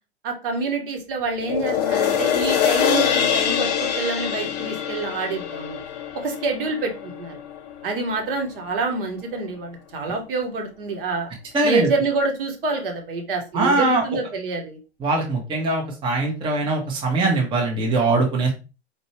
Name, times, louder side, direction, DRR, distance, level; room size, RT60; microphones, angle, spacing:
voice 1, 0.2-5.8 6.2-7.4 7.8-11.3 11.6-14.8, right 3 dB, 55° right, 2 dB, 1.2 m, -27 dB
sound 1, 1.4-8.0 8.4-8.5, left 9 dB, 40° left, 0.5 m, -24 dB
voice 2, 11.5-11.9 13.5-14.0 15.0-18.5, right 3 dB, 15° right, 0 dB, 0.8 m, -21 dB
4.5 x 2.6 x 3.1 m, 0.31 s
figure-of-eight pair, 100°, 34 cm